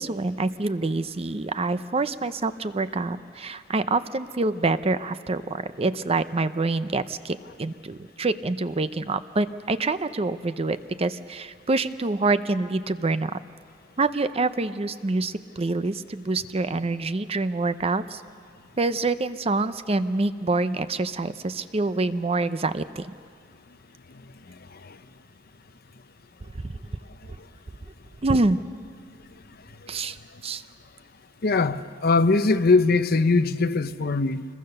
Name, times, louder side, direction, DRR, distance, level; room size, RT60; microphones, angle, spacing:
voice 1, 0.0-13.4 14.0-18.2 18.8-23.1 26.6-26.8 28.2-28.6 29.9-30.2 30.4-30.6, right 3 dB, 30° right, 12 dB, 0.6 m, -26 dB
voice 2, 24.5-25.0 29.8-30.0 31.4-34.5, left 3 dB, 50° left, 12 dB, 0.7 m, -22 dB
26.5 x 22.0 x 6.7 m, 2.2 s
head